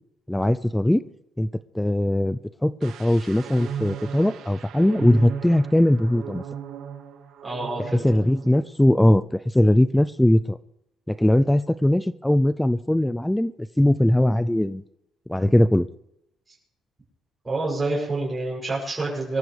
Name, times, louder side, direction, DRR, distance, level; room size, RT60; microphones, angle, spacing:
voice 1, 0.3-1.0 1.4-1.5 1.7-6.4 8.0-10.6 11.1-13.5 13.8-14.8 15.3-15.9, left 1 dB, 5° left, 15 dB, 0.5 m, -20 dB
sound 1, 2.8-8.5 8.8-9.1, right 8 dB, 75° right, 2.3 m, -37 dB
voice 2, 7.4-8.0 17.4-19.4, right 2 dB, 15° right, -6 dB, 7.8 m, -27 dB
25.5 x 14.0 x 3.4 m, 0.78 s
cardioid pair, 125°, 0 cm